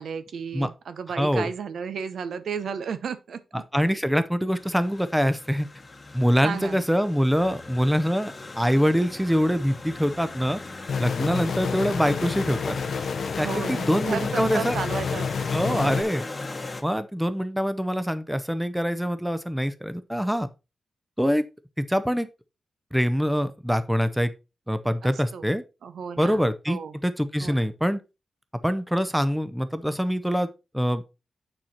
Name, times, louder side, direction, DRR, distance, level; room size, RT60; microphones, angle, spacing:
voice 1, 0.0-3.4 6.4-6.8 13.4-15.9 25.0-25.5 25.8-26.9 27.4-27.6, right 6 dB, 75° right, 0.8 m, -33 dB
voice 2, 1.2-1.5 3.7-5.7 6.1-10.6 11.0-12.8 13.4-14.8 15.5-16.2 16.8-20.5 21.2-21.4 21.8-22.3 22.9-24.3 24.7-25.6 26.2-28.0 28.6-30.5 30.7-31.0, equal, ahead, 0.5 m, -24 dB
sound 1, 4.5-16.8, left 3 dB, 25° left, 1.1 m, -38 dB
sound 2, 10.9-16.0, left 6 dB, 65° left, 0.6 m, -29 dB
9.0 x 4.3 x 4.2 m
wide cardioid pair, 160°, 0 cm